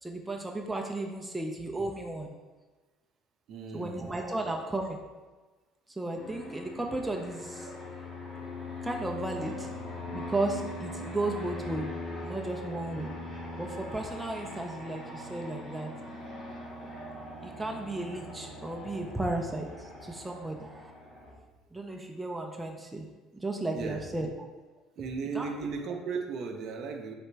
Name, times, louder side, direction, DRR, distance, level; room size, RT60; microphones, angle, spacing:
voice 1, 0.0-2.3 3.7-5.0 6.0-7.7 8.8-9.7 10.1-11.9 12.2-13.1 13.6-15.9 17.4-20.9 21.7-23.1 23.3-24.3 25.3-25.5, right 2 dB, 10° right, 1 dB, 0.4 m, -34 dB
voice 2, 3.5-4.1 23.7-24.0 25.0-27.1, right 5 dB, 55° right, 3 dB, 0.5 m, -36 dB
Fixed-wing aircraft airplane, 6.1-21.3, left 2 dB, 40° left, 1.1 m, -41 dB
3.3 x 2.9 x 4.4 m, 1.3 s
cardioid pair, 110°, 0 cm